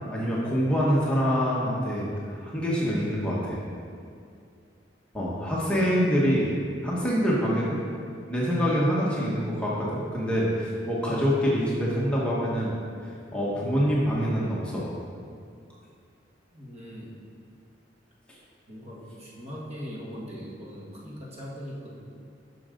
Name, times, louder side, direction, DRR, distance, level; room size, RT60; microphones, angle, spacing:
voice 1, 0.1-3.6 5.1-6.5 6.8-7.8 8.3-12.7 13.3-14.9, equal, 5° left, -6 dB, 1.4 m, -25 dB
voice 2, 16.5-17.2 18.7-22.0, equal, 35° right, -5 dB, 1.6 m, -40 dB
12.0 x 6.3 x 3.8 m, 2.3 s
head